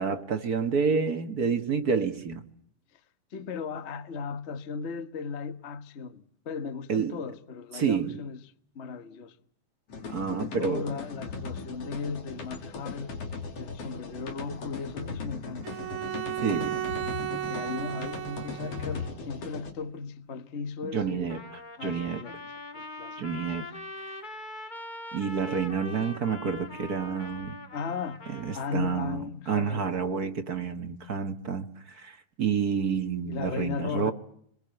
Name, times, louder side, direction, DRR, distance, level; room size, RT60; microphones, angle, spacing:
voice 1, 0.0-2.4 6.9-7.2 7.7-8.2 10.1-10.9 16.4-16.8 20.8-21.4 21.8-22.2 23.2-23.7 24.0-24.1 25.1-27.6 28.3-34.1, right 6 dB, 45° right, 1.4 m, -29 dB
voice 2, 3.3-8.4 8.7-9.4 10.3-13.2 13.6-15.7 17.3-21.3 21.8-22.4 22.7-23.2 27.7-28.2 28.5-30.0 33.3-34.1, left 5 dB, 75° left, 0.6 m, -36 dB
sound 1, 9.9-19.7, left 4 dB, 55° left, 3.7 m, -38 dB
Bowed string instrument, 15.6-19.1, right 12 dB, 85° right, 2.8 m, -34 dB
Trumpet, 21.3-29.1, left 2 dB, 25° left, 1.0 m, -42 dB
28.5 x 22.0 x 7.8 m
omnidirectional pair, 3.5 m